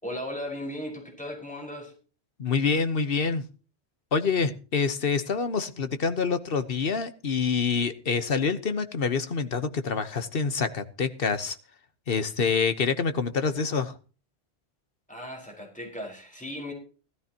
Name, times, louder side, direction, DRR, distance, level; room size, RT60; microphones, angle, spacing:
voice 1, 0.0-1.9 15.1-16.7, left 1 dB, 5° left, 0 dB, 4.9 m, -36 dB
voice 2, 2.4-3.4 4.1-11.6 12.1-14.0, left 5 dB, 60° left, 11 dB, 1.2 m, -26 dB
17.5 x 13.0 x 2.9 m, 0.36 s
omnidirectional pair, 1.1 m